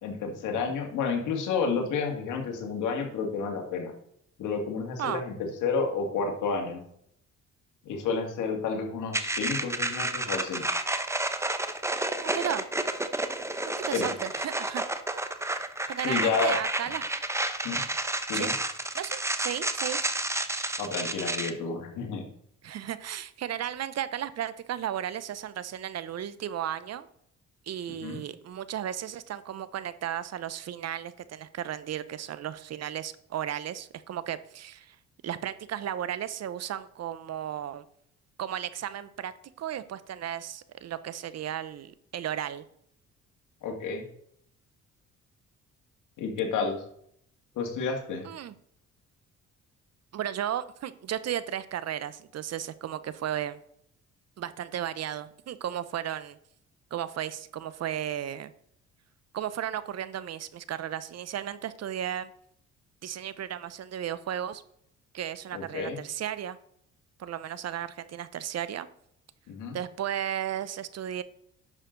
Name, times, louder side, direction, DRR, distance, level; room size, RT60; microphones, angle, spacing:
voice 1, 0.0-3.9 4.4-6.8 7.8-10.6 13.9-14.1 16.0-16.6 17.6-17.8 18.3-18.5 20.8-22.2 27.9-28.2 43.6-44.1 46.2-46.8 47.6-48.2 65.5-66.0 69.5-69.8, left 5 dB, 85° left, 3 dB, 2.1 m, -30 dB
sound 1, 9.1-21.5, right 2 dB, 10° right, 0.8 m, -30 dB
voice 2, 12.2-12.6 13.7-14.8 15.5-17.0 18.3-18.5 18.9-20.0 22.6-27.1 27.7-35.0 35.2-37.8 38.4-39.3 39.6-42.6 48.2-48.5 50.1-53.6 54.4-56.4 56.9-58.5 59.3-62.3 63.0-64.6 65.1-66.6 67.2-68.9 69.7-71.2, right 10 dB, 60° right, 15 dB, 0.7 m, -34 dB
10.5 x 6.6 x 3.9 m, 0.70 s
cardioid pair, 90°, 30 cm